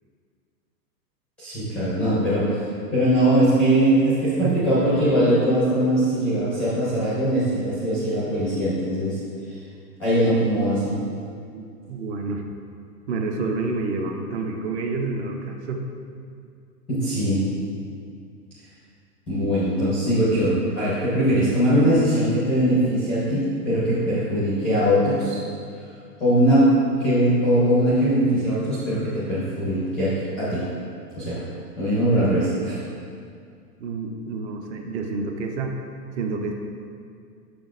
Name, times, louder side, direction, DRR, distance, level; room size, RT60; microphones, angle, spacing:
voice 1, 1.4-2.6 2.9-9.2 10.0-10.9 16.9-17.4 19.3-25.4 26.2-26.7 27.0-30.7 31.2-31.4 31.8-32.8, right 1 dB, 5° left, -10 dB, 0.4 m, -21 dB
voice 2, 11.5-12.4 13.1-15.8 33.8-35.8 36.2-36.5, right 3 dB, 45° right, 3 dB, 0.6 m, -28 dB
6.6 x 6.1 x 2.5 m, 2.3 s
hypercardioid pair, 145°, 48 cm